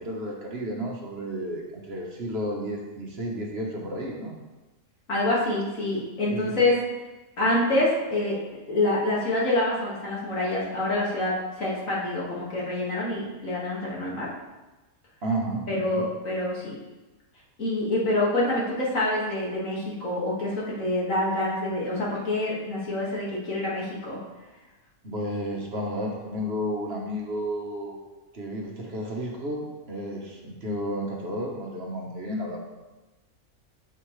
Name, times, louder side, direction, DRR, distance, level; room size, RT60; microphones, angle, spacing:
voice 1, 0.0-4.4 6.3-6.5 15.2-16.1 25.0-28.0 28.3-32.6, equal, 50° right, -1 dB, 1.4 m, -32 dB
voice 2, 5.1-6.8 7.4-8.4 8.7-14.3 15.7-16.8 17.6-24.2, left 2 dB, 70° left, -5 dB, 2.4 m, -26 dB
7.9 x 7.5 x 3.2 m, 1.1 s
omnidirectional pair, 1.4 m